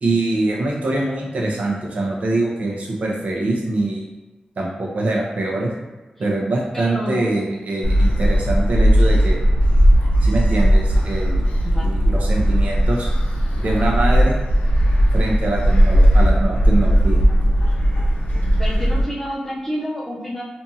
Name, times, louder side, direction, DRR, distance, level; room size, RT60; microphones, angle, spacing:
voice 1, 0.0-4.1 4.6-5.7 6.2-9.4 10.2-11.5 11.8-13.1 13.6-14.4 15.1-17.2, right 2 dB, 60° right, -2 dB, 0.7 m, -23 dB
voice 2, 6.7-7.2 11.6-11.9 18.6-20.4, equal, 10° left, -5 dB, 0.7 m, -28 dB
Gull seagull, 7.8-19.0, equal, 70° left, 0.5 m, -16 dB
2.6 x 2.4 x 2.7 m, 1.1 s
wide cardioid pair, 110°, 3 cm